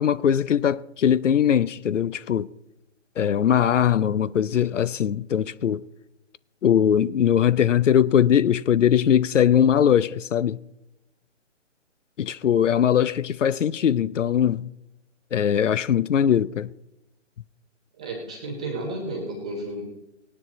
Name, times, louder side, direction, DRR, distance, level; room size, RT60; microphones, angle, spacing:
voice 1, 0.0-2.5 3.2-5.8 6.6-10.6 12.2-14.7 15.3-16.7, left 9 dB, 75° left, 0.6 m, -21 dB
voice 2, 18.0-19.8, right 1 dB, 5° right, 0.5 m, -32 dB
18.0 x 9.8 x 4.1 m
hypercardioid pair, 155°, 37 cm